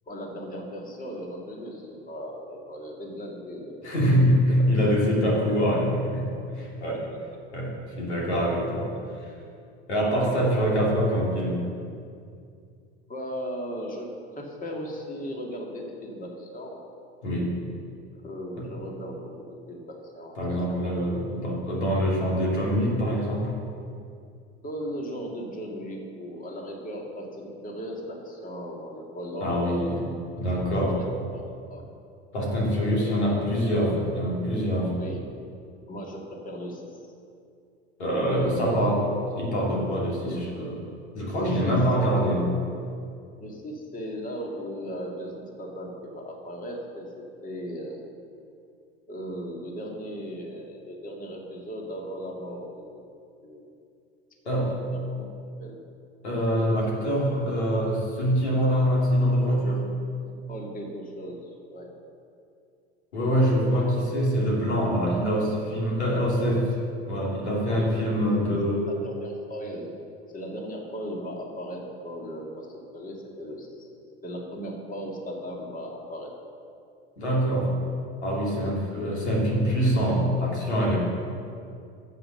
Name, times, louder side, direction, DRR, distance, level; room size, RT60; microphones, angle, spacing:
voice 1, 0.1-3.9 4.5-5.0 10.3-10.5 13.1-16.8 18.2-20.6 20.8-21.0 24.6-30.0 30.5-31.1 31.3-31.4 31.7-31.8 32.9-33.3 35.0-35.2 35.9-37.0 38.3-38.8 41.4-41.8 42.2-42.4 43.4-48.0 49.1-53.1 53.4-53.7 54.6-55.3 55.6-55.8 56.9-57.0 60.3-61.9 65.9-66.6 67.7-67.9 68.2-68.5 68.8-70.0 70.3-73.9 74.2-76.3, equal, 25° left, 0 dB, 2.2 m, -37 dB
voice 2, 3.8-7.0 7.5-8.9 9.2-9.3 9.9-11.6 17.2-17.5 18.6-18.7 20.3-23.5 29.4-30.0 30.4-31.0 32.3-35.0 38.0-39.0 39.3-40.8 41.1-42.4 54.4-54.8 56.2-59.9 63.1-66.6 67.1-68.9 77.2-77.7 78.2-81.0, equal, 85° left, -3 dB, 2.9 m, -24 dB
10.0 x 7.9 x 6.6 m, 2.4 s
hypercardioid pair, 80°, 33 cm